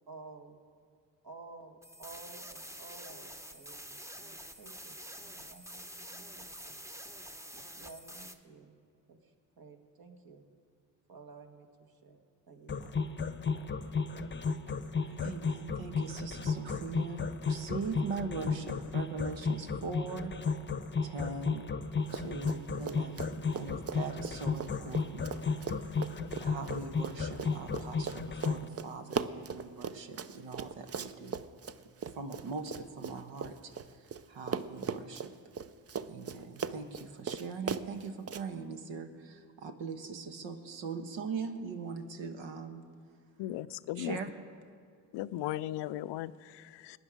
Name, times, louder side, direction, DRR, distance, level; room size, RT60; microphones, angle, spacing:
voice 1, 0.1-0.6 1.2-6.8 7.5-8.8 9.1-10.5 11.1-13.1, right 4 dB, 45° right, 5 dB, 1.9 m, -53 dB
sound 1, 1.8-8.3, equal, 5° right, 1.0 m, -47 dB
sound 2, 12.7-28.7, left 5 dB, 25° left, 0.9 m, -33 dB
voice 2, 14.8-20.4 21.0-21.7 22.1-25.4 25.7-26.1 26.4-31.5 32.1-35.3 36.1-42.8 44.0-44.3, right 4 dB, 65° right, 7 dB, 1.4 m, -41 dB
Run, 22.0-22.6 22.8-34.2 34.5-38.4, right 6 dB, 30° right, 0.7 m, -39 dB
voice 3, 43.4-44.2 45.1-47.0, left 14 dB, 60° left, 16 dB, 0.6 m, -37 dB
19.5 x 9.9 x 5.1 m, 2.2 s
hypercardioid pair, 45°, 49 cm